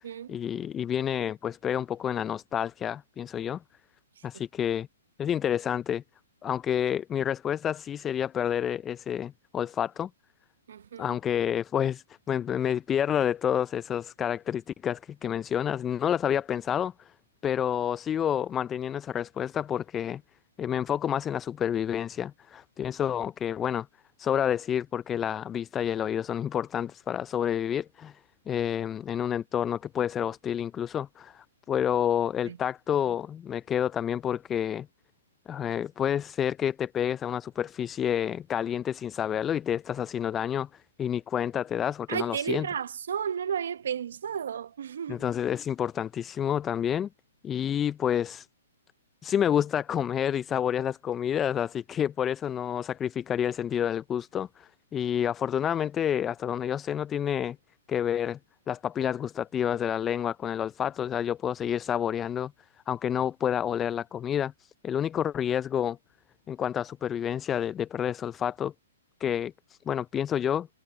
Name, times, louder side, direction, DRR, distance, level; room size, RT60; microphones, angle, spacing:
voice 1, 0.3-3.6 4.2-4.9 5.2-6.0 6.4-10.1 11.0-17.1 17.4-20.2 20.6-23.9 24.2-28.2 28.5-34.9 35.5-42.7 45.1-47.1 47.4-48.5 49.2-57.6 57.9-58.4 58.7-62.5 62.9-66.0 66.5-68.7 69.2-70.7, left 9 dB, 20° left, 0.4 m, -29 dB
voice 2, 10.7-11.1 32.4-32.6 42.1-45.2, right 8 dB, 70° right, 1.1 m, -33 dB
hypercardioid pair, 135°, 0 cm